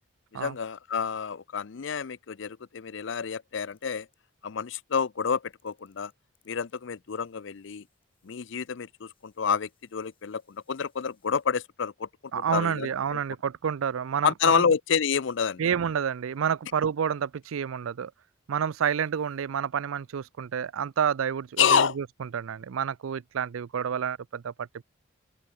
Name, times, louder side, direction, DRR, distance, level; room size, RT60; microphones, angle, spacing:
voice 1, 0.3-4.1 4.4-6.1 6.5-7.8 8.2-12.1 12.4-13.2 14.2-15.6 21.6-22.0, left 6 dB, 60° left, 0.5 m, -28 dB
sound 1, 3.7-4.4 5.5-11.5, left 9 dB, 25° left, 8.0 m, -74 dB
voice 2, 12.3-14.7 15.6-18.1 18.5-24.8, right 7 dB, 80° right, 0.4 m, -29 dB
open air
head